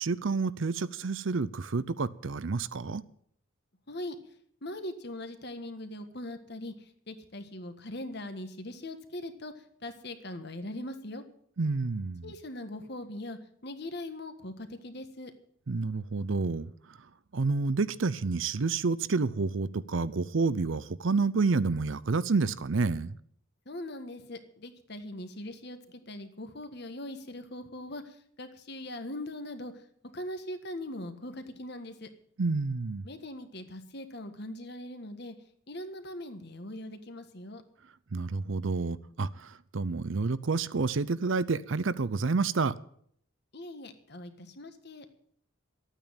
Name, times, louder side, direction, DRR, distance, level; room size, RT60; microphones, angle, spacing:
voice 1, 0.0-3.0 11.6-12.3 15.7-17.1 17.3-23.2 32.4-33.1 38.1-42.7, right 4 dB, 65° right, 0.6 m, -29 dB
voice 2, 4.6-11.2 12.2-15.3 23.6-29.7 30.0-32.1 33.0-35.3 35.7-37.6 43.5-45.0, left 1 dB, 50° left, 1.5 m, -41 dB
13.0 x 9.1 x 8.9 m
head